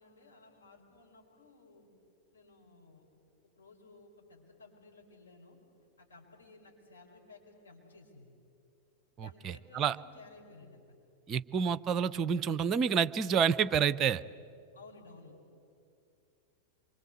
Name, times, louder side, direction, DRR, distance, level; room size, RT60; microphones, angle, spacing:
voice 1, 0.0-1.9 2.3-3.1 3.5-5.6 6.0-8.3 9.2-10.9 14.7-15.3, left 3 dB, 70° left, -1 dB, 5.6 m, -56 dB
voice 2, 9.2-10.0 11.3-14.2, right 7 dB, 30° right, 16 dB, 0.6 m, -29 dB
27.0 x 24.5 x 8.3 m, 2.5 s
figure-of-eight pair, 90°, 0 cm